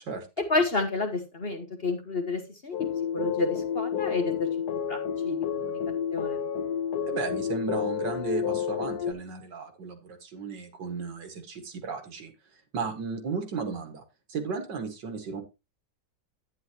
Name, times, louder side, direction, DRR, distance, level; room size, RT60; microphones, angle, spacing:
voice 1, 0.4-2.8 3.1-4.5 4.9-5.0 5.2-5.8 6.1-6.4, left 3 dB, 35° left, 5 dB, 1.4 m, -29 dB
sound 1, 2.7-9.1, left 8 dB, 65° left, 1.3 m, -30 dB
voice 2, 7.1-12.3 12.7-14.0 14.3-15.4, right 5 dB, 75° right, 6 dB, 2.4 m, -34 dB
10.5 x 9.8 x 2.9 m, 0.25 s
omnidirectional pair, 1.9 m